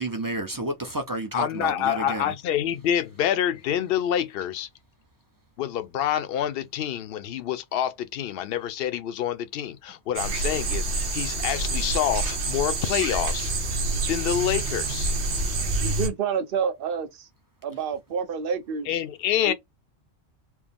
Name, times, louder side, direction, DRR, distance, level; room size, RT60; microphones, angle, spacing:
voice 1, 0.0-2.3, right 1 dB, 25° right, 0.5 m, -30 dB
voice 2, 1.3-4.7 5.6-13.5 14.1-15.1 18.9-19.5, left 10 dB, 65° left, 0.7 m, -27 dB
sound 1, 10.1-16.1, right 2 dB, 75° right, 1.2 m, -27 dB
voice 3, 15.8-17.3 17.6-18.9 19.4-19.5, right 6 dB, 55° right, 0.9 m, -28 dB
4.5 x 2.0 x 3.5 m
omnidirectional pair, 1.2 m